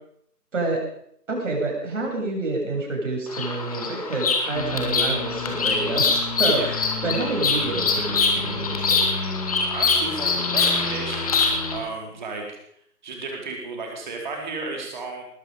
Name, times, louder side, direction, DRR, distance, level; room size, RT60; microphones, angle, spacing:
voice 1, 0.5-0.9 1.3-9.0, right 2 dB, 50° right, -1 dB, 7.2 m, -28 dB
Bird vocalization bird call bird song, 3.3-11.8, left 4 dB, 25° left, 2.1 m, -24 dB
sound 1, 4.5-11.8, left 2 dB, 75° left, 3.3 m, -33 dB
voice 2, 9.6-12.4 13.0-15.2, right 3 dB, 30° right, 1 dB, 4.3 m, -33 dB
20.0 x 13.5 x 5.2 m, 0.69 s
figure-of-eight pair, 160°, 47 cm